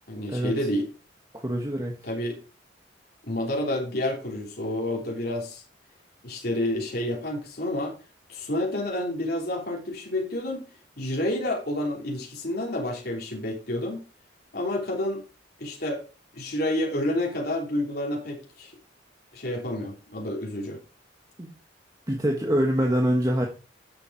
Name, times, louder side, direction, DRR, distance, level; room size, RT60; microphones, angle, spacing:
voice 1, 0.1-0.8 2.0-2.4 3.2-5.6 6.2-8.0 8.3-14.0 14.5-15.2 15.6-16.0 16.3-18.7 19.3-20.8, left 1 dB, 55° left, 3.1 m, -29 dB
voice 2, 1.3-2.0 21.4-21.5 22.1-23.5, equal, 20° right, 1.4 m, -24 dB
10.0 x 6.9 x 4.7 m
head